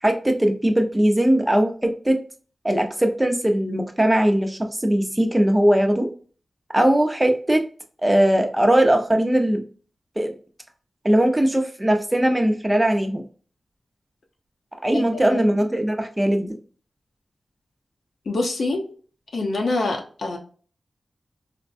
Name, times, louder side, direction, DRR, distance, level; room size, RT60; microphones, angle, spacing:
voice 1, 0.0-2.2 2.6-6.1 6.7-7.6 8.0-9.6 10.2-10.3 11.0-13.2 14.8-16.5, right 1 dB, 10° right, 4 dB, 0.6 m, -20 dB
voice 2, 14.9-15.4 18.3-18.8 19.3-20.4, left 2 dB, 85° left, 1 dB, 0.8 m, -25 dB
4.3 x 2.1 x 2.5 m, 0.41 s
wide cardioid pair, 100°, 0 cm